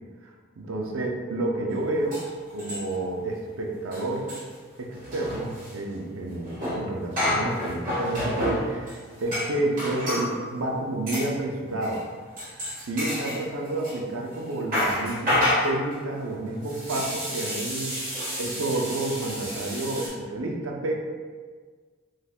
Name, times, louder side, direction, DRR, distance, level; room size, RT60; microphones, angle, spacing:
voice 1, 0.6-2.2 2.5-4.3 4.8-12.0 12.8-18.1 18.4-20.9, right 2 dB, 90° right, 0 dB, 0.5 m, -30 dB
sound 1, 1.7-1.8 2.1-3.1 3.4-3.5 3.8-10.3 11.1-11.3 11.8-12.0 12.4-14.0 14.3-20.1, left 1 dB, 45° right, 1.3 m, -30 dB
3.2 x 2.4 x 3.5 m, 1.5 s
head